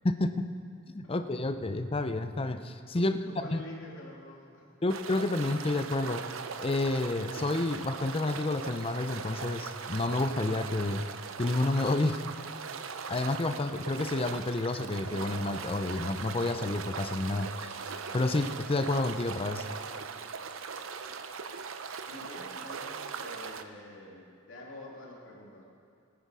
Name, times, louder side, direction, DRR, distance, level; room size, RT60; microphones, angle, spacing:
voice 1, 0.0-0.5 0.9-3.2 3.5-3.6 4.8-6.2 6.6-11.1 11.4-12.2 13.1-17.7 18.1-19.6, left 2 dB, 30° left, 9 dB, 0.5 m, -30 dB
voice 2, 2.9-4.7 22.1-25.6, left 1 dB, 70° left, -3 dB, 2.6 m, -47 dB
sound 1, 4.9-23.6, right 5 dB, 80° right, 0.6 m, -40 dB
18.0 x 9.6 x 4.8 m, 2.4 s
head